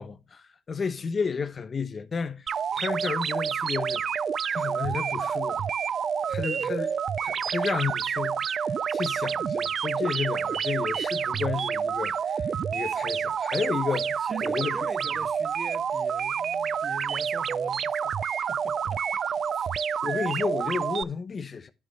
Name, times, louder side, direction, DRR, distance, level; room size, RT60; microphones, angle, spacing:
voice 1, 0.0-2.5 2.7-4.0 4.5-5.7 6.3-14.8 20.0-21.7, left 5 dB, 40° left, 1.0 m, -32 dB
sound 1, 2.5-21.0, right 7 dB, 55° right, 0.4 m, -28 dB
voice 2, 14.2-19.0 19.5-19.8, right 2 dB, 20° right, 0.7 m, -43 dB
10.5 x 6.1 x 3.2 m
supercardioid pair, 65°, 0 cm